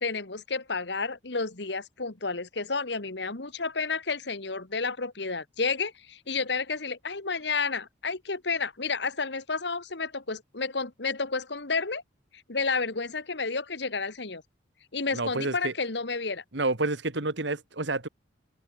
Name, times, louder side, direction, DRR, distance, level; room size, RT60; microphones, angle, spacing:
voice 1, 0.0-12.0 12.5-14.4 14.9-16.4, left 4 dB, 65° left, 1.7 m, -31 dB
voice 2, 15.1-15.7 16.5-18.1, right 2 dB, 65° right, 2.0 m, -29 dB
open air
head